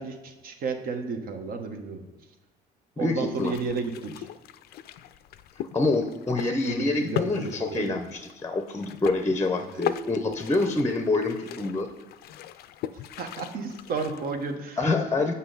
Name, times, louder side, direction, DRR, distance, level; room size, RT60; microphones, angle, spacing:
voice 1, 0.0-2.0 3.0-4.3 6.6-8.0 13.2-14.8, right 4 dB, 60° right, 6 dB, 1.0 m, -32 dB
voice 2, 3.0-3.5 5.7-11.9 14.8-15.3, left 2 dB, 15° left, 6 dB, 0.6 m, -26 dB
sound 1, 3.2-14.5, left 11 dB, 70° left, 0.4 m, -38 dB
8.0 x 5.6 x 3.8 m, 1.2 s
cardioid pair, 110°, 17 cm